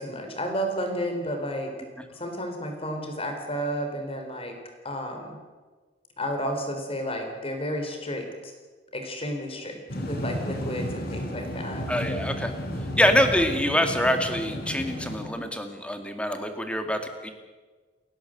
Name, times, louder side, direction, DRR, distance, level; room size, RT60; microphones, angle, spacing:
voice 1, 0.0-1.7 2.2-4.5 4.8-5.4 6.2-8.3 8.9-9.8 10.1-11.9, equal, 30° left, 4 dB, 4.1 m, -31 dB
Tokyo - Train Interior, 9.9-15.3, equal, 55° left, 4.0 m, -33 dB
voice 2, 11.9-12.5 13.0-17.3, equal, 5° left, 6 dB, 2.0 m, -25 dB
30.0 x 11.0 x 7.9 m, 1.4 s
head